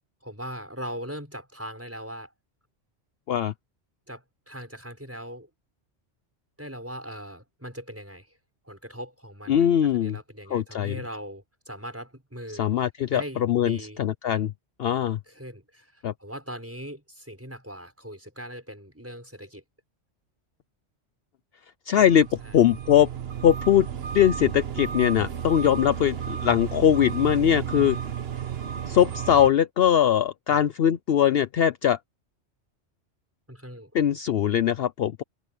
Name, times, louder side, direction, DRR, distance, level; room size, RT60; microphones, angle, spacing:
voice 1, 0.2-2.3 4.1-5.5 6.6-8.3 8.6-12.7 13.1-14.0 15.3-19.6 22.4-22.6 30.5-30.6 33.5-33.9, equal, 10° right, 6.5 m, -40 dB
voice 2, 9.5-10.2 10.5-11.0 12.6-14.5 14.8-15.2 16.0-16.1 21.9-22.3 22.5-23.1 23.4-23.9 24.1-28.0 28.9-32.0 33.9-35.2, left 10 dB, 60° left, 0.8 m, -21 dB
sound 1, 22.0-29.5, right 8 dB, 60° right, 1.1 m, -33 dB
omnidirectional pair, 1.2 m